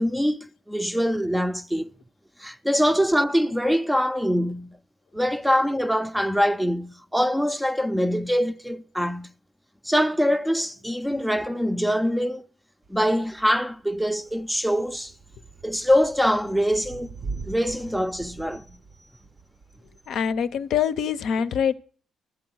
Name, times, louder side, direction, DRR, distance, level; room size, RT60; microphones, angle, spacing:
voice 1, 0.0-1.9 2.4-4.8 5.1-9.3 9.8-12.4 12.9-15.1 15.6-17.1 17.4-18.6, equal, ahead, 0.5 m, -24 dB
Thunder / Rain, 12.8-21.1, right 4 dB, 50° right, 0.6 m, -42 dB
voice 2, 20.1-21.8, left 8 dB, 70° left, 0.6 m, -24 dB
12.5 x 8.7 x 6.2 m
cardioid pair, 90°, 0 cm